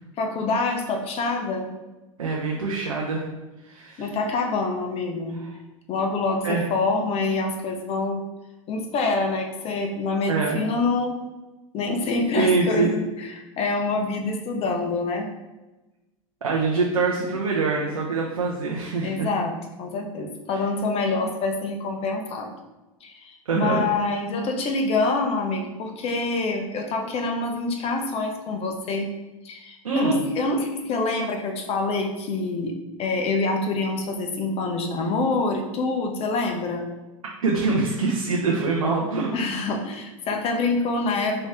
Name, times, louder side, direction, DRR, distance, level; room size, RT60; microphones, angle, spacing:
voice 1, 0.2-1.7 4.0-5.4 5.9-8.2 8.7-11.2 11.7-15.3 19.0-19.5 19.8-22.6 23.0-29.1 29.4-36.9 39.3-41.5, left 3 dB, 35° left, 3 dB, 0.8 m, -26 dB
voice 2, 2.2-3.3 3.6-4.1 5.4-5.5 6.4-6.7 10.3-10.6 12.3-13.0 16.4-19.3 20.5-20.6 23.5-23.9 29.8-30.2 37.4-39.3, right 4 dB, 90° right, -2 dB, 0.7 m, -24 dB
4.4 x 2.9 x 3.5 m, 1.1 s
hypercardioid pair, 100°, 18 cm